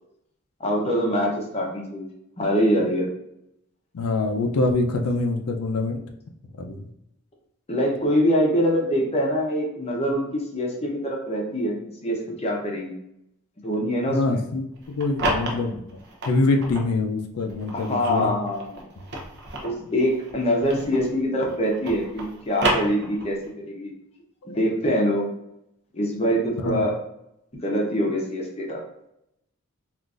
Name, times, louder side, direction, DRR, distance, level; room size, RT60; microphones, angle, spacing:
voice 1, 0.6-2.1 2.4-3.1 7.7-12.9 13.6-14.4 17.7-18.8 19.6-23.4 23.6-23.9 24.5-25.3 25.9-26.9 27.6-28.8, equal, 30° left, -1 dB, 0.7 m, -24 dB
voice 2, 3.9-6.0 6.6-6.8 14.1-16.0 16.2-18.3 24.4-24.6 26.6-26.8, left 2 dB, 85° left, 4 dB, 0.5 m, -25 dB
sound 1, 14.8-16.9 17.5-21.2 21.5-23.5, right 2 dB, 50° right, 0.6 m, -30 dB
3.7 x 2.5 x 2.4 m, 0.80 s
head